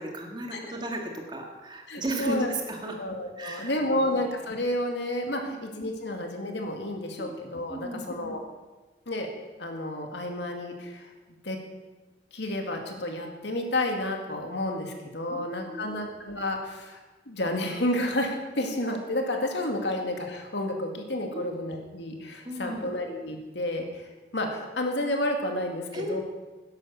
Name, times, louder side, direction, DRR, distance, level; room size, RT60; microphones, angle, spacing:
voice 1, 0.0-3.0 3.4-4.2 5.4-5.6 7.2-7.3 7.7-8.4 15.3-16.0 21.3-21.6 22.4-22.9 25.9-26.2, right 1 dB, 25° right, 2 dB, 1.8 m, -35 dB
voice 2, 1.9-2.5 3.0-8.4 9.1-9.3 9.6-11.1 11.4-11.6 12.3-17.0 17.3-26.2, left 1 dB, 75° left, 3 dB, 2.2 m, -31 dB
12.5 x 10.5 x 7.0 m, 1.2 s
head